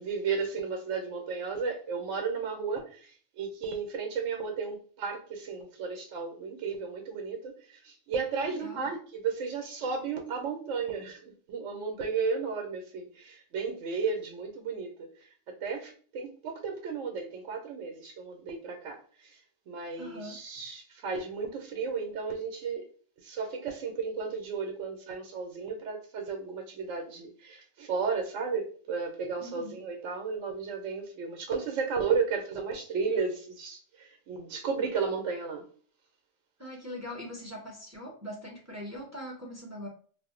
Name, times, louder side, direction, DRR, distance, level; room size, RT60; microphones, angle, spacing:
voice 1, 0.0-22.9 23.2-35.7, right 5 dB, 75° right, 0.9 m, -34 dB
voice 2, 8.4-8.9 20.0-20.4 29.4-29.8 36.6-39.9, equal, 20° right, 0.4 m, -41 dB
2.5 x 2.0 x 3.6 m
omnidirectional pair, 1.3 m